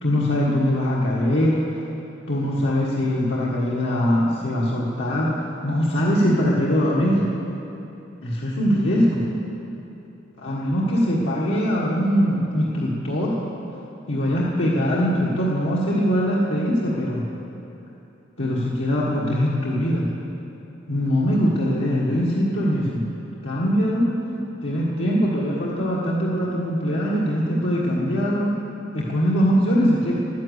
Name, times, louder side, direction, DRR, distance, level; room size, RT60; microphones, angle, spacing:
voice 1, 0.0-1.6 2.3-5.3 5.6-7.3 8.2-9.3 10.4-13.6 14.1-17.3 18.4-20.1 20.9-23.1 23.4-24.2 24.6-28.5 28.9-30.1, equal, 75° left, -7 dB, 1.6 m, -22 dB
11.5 x 10.5 x 8.2 m, 2.9 s
head